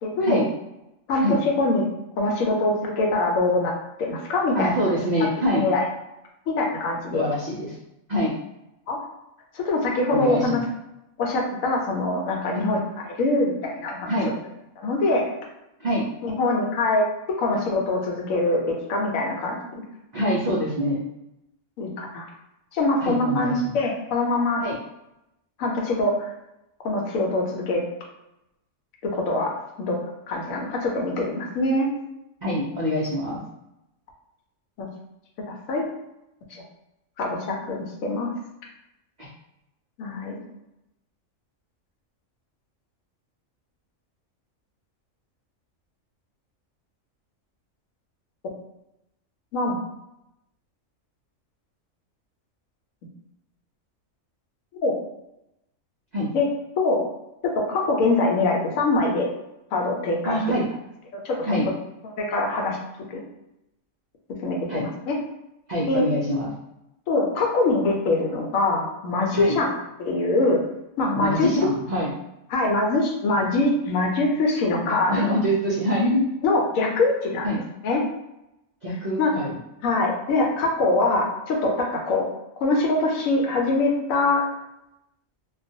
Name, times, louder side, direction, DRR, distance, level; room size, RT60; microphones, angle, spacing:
voice 1, 0.0-0.4 1.1-1.9 2.2-3.7 4.0-4.7 5.5-5.8 6.5-7.2 8.9-9.0 9.5-10.6 11.2-14.3 14.8-15.2 16.2-19.8 21.8-22.3 22.7-24.6 25.6-26.3 26.8-27.8 29.0-29.5 29.8-30.0 30.3-31.9 34.8-34.9 35.5-35.9 36.5-36.6 37.2-38.3 40.0-40.4 49.5-49.8 54.8-55.0 56.3-56.5 56.8-57.0 57.4-59.3 59.7-60.4 61.1-61.5 62.2-62.8 63.1-63.2 64.4-65.1 65.9-66.1 67.1-69.7 70.0-70.6 71.0-71.5 72.5-75.1 76.4-77.5 77.8-78.0 79.2-79.3 79.8-82.3 82.6-84.4, left 2 dB, 80° left, 0 dB, 1.0 m, -23 dB
voice 2, 4.5-5.6 7.1-7.8 8.1-8.3 10.1-10.6 12.5-12.6 14.1-14.3 15.8-16.1 20.1-21.0 23.0-23.7 24.6-24.8 32.4-33.4 39.2-39.3 56.1-56.3 60.2-60.6 61.5-61.6 64.7-64.8 65.7-66.5 69.3-69.6 71.2-72.1 74.8-76.3 77.4-77.6 78.8-79.6, equal, 85° right, -6 dB, 0.3 m, -25 dB
2.3 x 2.2 x 2.6 m, 0.89 s
omnidirectional pair, 1.4 m